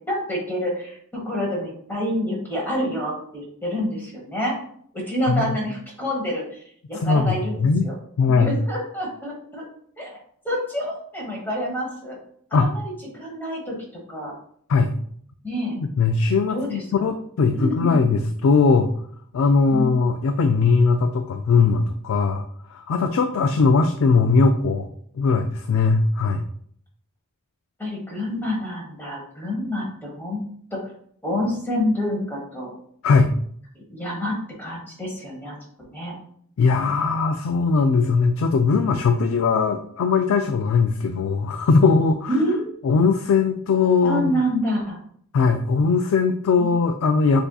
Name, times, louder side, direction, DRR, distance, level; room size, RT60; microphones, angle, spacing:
voice 1, 0.1-4.6 4.9-6.6 6.9-7.9 8.4-9.6 10.0-10.2 10.4-12.2 12.5-13.7 14.1-14.3 15.4-15.8 16.5-17.1 17.5-18.1 19.7-20.0 27.8-30.4 30.7-30.8 31.2-32.7 33.9-36.2 42.3-42.7 44.0-45.0 46.6-46.7, equal, 10° left, -3 dB, 1.2 m, -27 dB
voice 2, 7.0-7.9 8.2-8.5 12.5-12.7 14.7-14.9 15.8-18.9 19.3-22.5 22.7-24.9 25.1-26.4 33.0-33.3 36.6-42.4 42.8-44.4 45.3-47.4, left 4 dB, 65° left, 6 dB, 0.3 m, -20 dB
6.7 x 2.7 x 2.3 m, 0.62 s
head